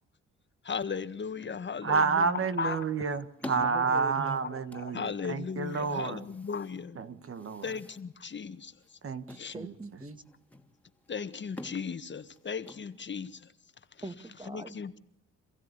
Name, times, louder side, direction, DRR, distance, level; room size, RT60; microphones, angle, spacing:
voice 1, 0.6-2.8 4.4-7.0 7.6-8.7 9.3-9.5 11.1-13.5 14.5-15.0, left 6 dB, 40° left, 1.7 m, -36 dB
voice 2, 1.8-6.2 6.9-7.6 9.0-9.7, right 5 dB, 45° right, 1.8 m, -30 dB
sound 1, 2.5-13.5, left 1 dB, 5° left, 2.7 m, -50 dB
voice 3, 3.5-4.5 9.5-10.2 14.0-14.8, right 2 dB, 15° right, 2.1 m, -42 dB
27.5 x 16.0 x 10.0 m
cardioid pair, 90°, 30 cm